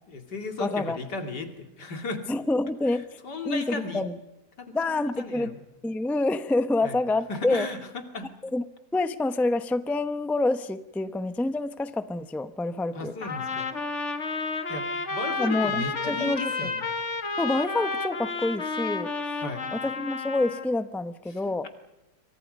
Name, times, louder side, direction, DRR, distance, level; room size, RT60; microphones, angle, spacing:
voice 1, 0.1-2.2 3.2-4.0 4.6-5.6 6.8-7.0 7.3-8.3 12.9-13.7 14.7-16.8 19.4-19.6 21.3-21.7, left 3 dB, 80° left, 5 dB, 3.2 m, -35 dB
voice 2, 0.6-1.0 2.3-3.0 3.4-4.2 4.7-5.6 5.8-7.7 8.4-8.7 8.9-13.1 15.4-16.7 17.4-19.4 19.7-21.7, left 2 dB, ahead, 11 dB, 0.5 m, -27 dB
Trumpet, 13.2-20.7, left 4 dB, 45° left, 2.2 m, -31 dB
27.0 x 25.0 x 5.4 m, 1.0 s
omnidirectional pair, 1.8 m